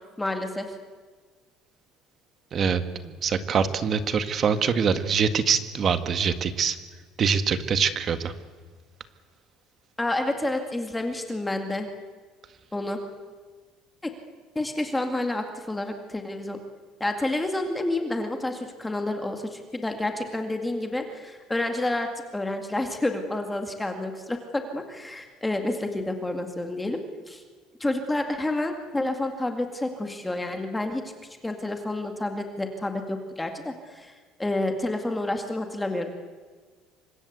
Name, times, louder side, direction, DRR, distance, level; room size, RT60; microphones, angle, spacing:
voice 1, 0.2-0.7 10.0-11.9 12.7-13.0 14.6-16.6 17.0-27.4 27.8-31.0 31.4-34.1 34.4-36.1, left 2 dB, 10° left, 5 dB, 2.2 m, -29 dB
voice 2, 2.5-6.8 7.2-8.3, right 6 dB, 30° right, 10 dB, 1.8 m, -24 dB
28.5 x 25.0 x 8.1 m, 1.5 s
cardioid pair, 160°, 0 cm